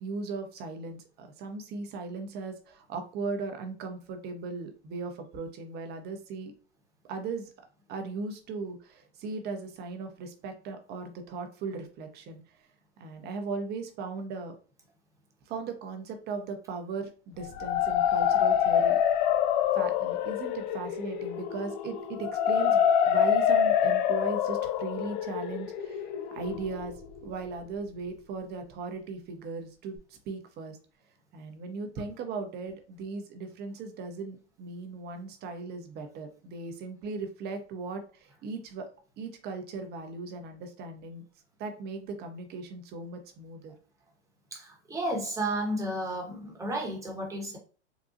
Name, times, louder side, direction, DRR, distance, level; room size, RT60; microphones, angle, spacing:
voice 1, 0.0-6.5 7.1-7.5 7.9-12.4 13.0-14.5 15.5-19.0 19.8-26.9 27.2-30.8 31.3-38.9 39.2-41.2 41.6-43.7, right 4 dB, 30° right, 6 dB, 0.7 m, -38 dB
sound 1, 17.4-27.3, left 9 dB, 45° left, 0.4 m, -26 dB
voice 2, 44.5-47.6, right 1 dB, 10° right, 0 dB, 1.0 m, -32 dB
3.7 x 2.3 x 2.6 m, 0.38 s
hypercardioid pair, 110°, 34 cm